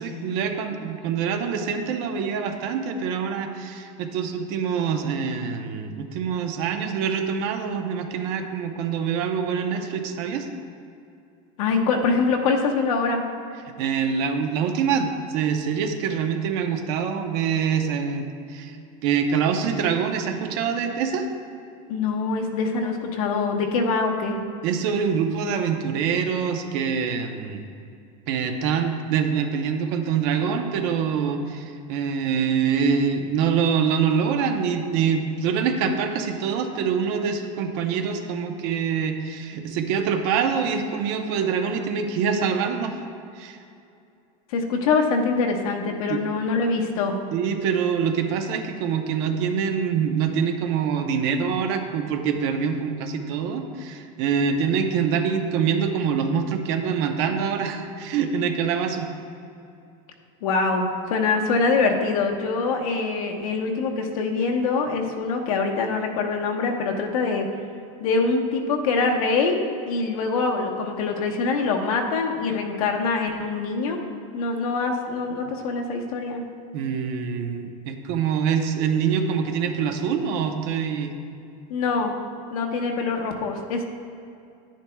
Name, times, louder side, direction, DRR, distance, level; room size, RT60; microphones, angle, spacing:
voice 1, 0.0-10.5 13.8-21.3 24.6-27.6 28.3-42.9 43.4-43.6 46.1-46.2 47.3-59.1 76.7-81.1, right 6 dB, 50° right, 5 dB, 0.8 m, -25 dB
voice 2, 11.6-13.2 21.9-24.4 44.5-47.2 60.4-67.5 68.0-69.6 69.9-74.0 74.3-76.4 81.7-82.1 82.5-83.8, left 4 dB, 80° left, 2 dB, 1.2 m, -24 dB
10.5 x 10.0 x 2.3 m, 2.6 s
supercardioid pair, 175°, 18 cm